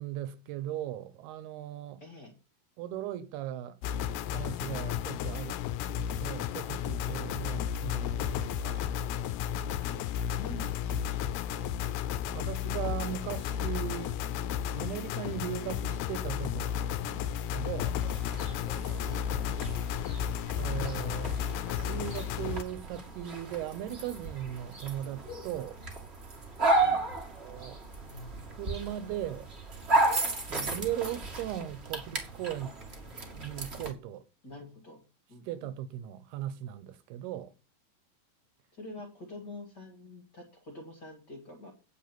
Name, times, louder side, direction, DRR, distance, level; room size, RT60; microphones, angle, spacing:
voice 1, 0.0-2.0 2.8-3.8 4.3-5.6 6.0-8.9 12.3-14.2 14.7-18.0 20.6-21.4 21.8-25.8 27.4-27.8 28.5-29.5 30.5-32.8 33.3-34.2 35.5-37.5, right 12 dB, 80° right, 2.7 m, -38 dB
voice 2, 2.0-2.3 9.8-11.5 19.0-19.2 26.8-27.0 34.4-35.0 35.3-35.7 38.7-41.7, left 2 dB, 40° left, 1.6 m, -46 dB
sound 1, 3.8-22.6, left 9 dB, 80° left, 2.5 m, -33 dB
sound 2, 7.7-12.7, right 2 dB, ahead, 1.9 m, -51 dB
sound 3, 18.0-33.9, right 2 dB, 25° right, 1.4 m, -34 dB
9.3 x 7.2 x 6.0 m
omnidirectional pair, 4.6 m